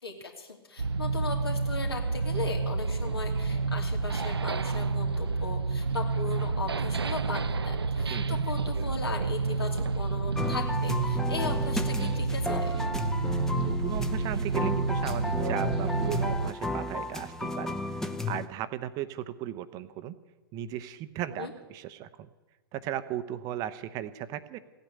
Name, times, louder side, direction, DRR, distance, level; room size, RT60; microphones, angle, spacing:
voice 1, 0.0-12.7 21.4-21.5, left 3 dB, 75° left, 2 dB, 2.9 m, -38 dB
sound 1, 0.8-16.5, right 4 dB, 80° right, 0.5 m, -29 dB
voice 2, 8.1-8.4 13.2-20.2 20.5-22.3 22.7-24.6, right 12 dB, 30° right, 12 dB, 0.8 m, -36 dB
sound 2, 10.3-18.5, left 2 dB, 5° left, 0.8 m, -33 dB
16.5 x 9.0 x 9.8 m, 1.2 s
figure-of-eight pair, 115°, 13 cm